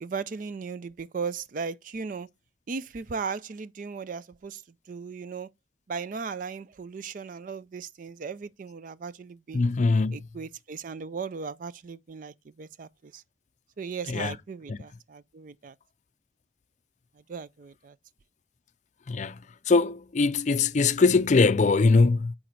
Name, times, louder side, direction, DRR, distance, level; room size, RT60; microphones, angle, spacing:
voice 1, 0.0-2.3 2.7-4.6 4.9-5.5 5.9-9.6 10.1-13.2 13.8-15.7 17.3-17.9, right 5 dB, 45° right, 0.4 m, -37 dB
voice 2, 9.5-10.2 14.1-14.3 14.7-14.8 19.1-19.4 19.7-22.3, left 4 dB, 40° left, 0.4 m, -22 dB
9.1 x 3.7 x 4.5 m
head